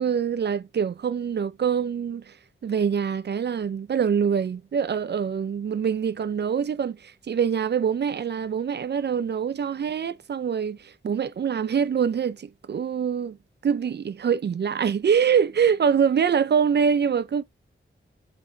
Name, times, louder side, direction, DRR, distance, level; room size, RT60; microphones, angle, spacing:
voice 1, 0.0-2.4 2.6-13.4 13.6-17.4, right 7 dB, 55° right, 0.4 m, -24 dB
6.0 x 3.0 x 2.6 m
wide cardioid pair, 80°, 21 cm